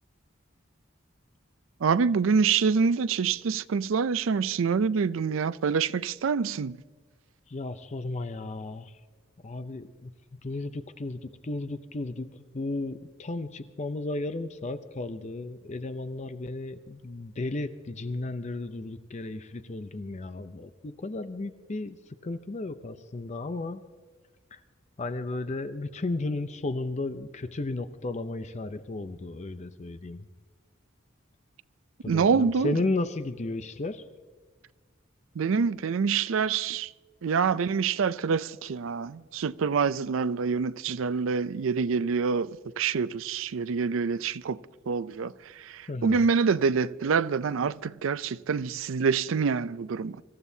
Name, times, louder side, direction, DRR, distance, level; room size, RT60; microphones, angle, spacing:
voice 1, 1.8-6.8 32.1-32.7 35.4-36.9 37.2-44.6 44.9-50.2, right 5 dB, 75° right, 0.4 m, -26 dB
voice 2, 7.5-9.0 9.4-10.1 10.4-23.8 24.5-24.6 25.0-30.3 32.0-34.1 45.9-46.3, left 2 dB, 35° left, 0.5 m, -34 dB
25.5 x 15.0 x 2.7 m
head